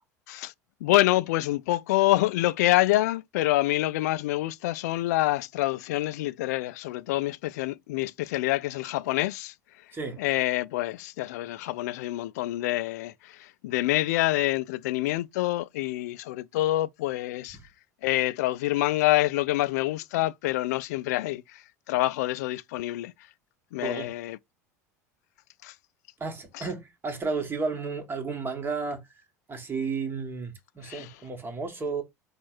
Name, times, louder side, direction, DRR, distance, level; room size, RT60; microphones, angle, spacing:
voice 1, 0.8-9.5 10.2-17.6 18.0-23.1 23.7-24.4 25.6-25.7 26.6-26.7 30.8-31.1, left 17 dB, 70° left, 0.4 m, -26 dB
voice 2, 9.9-10.2 23.8-24.1 26.2-29.2 29.5-32.0, right 4 dB, 25° right, 1.5 m, -33 dB
4.3 x 2.4 x 4.6 m
hypercardioid pair, 75°, 9 cm